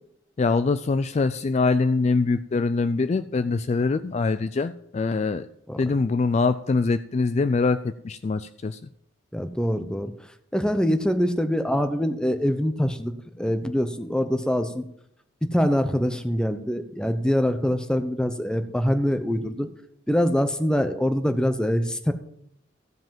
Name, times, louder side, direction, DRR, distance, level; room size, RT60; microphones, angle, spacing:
voice 1, 0.4-5.5 5.8-8.8, left 3 dB, 35° left, 12 dB, 0.3 m, -23 dB
voice 2, 9.3-10.1 10.5-14.8 15.4-19.7 20.1-22.1, equal, 5° left, 9 dB, 0.7 m, -24 dB
14.5 x 5.1 x 7.5 m, 0.74 s
head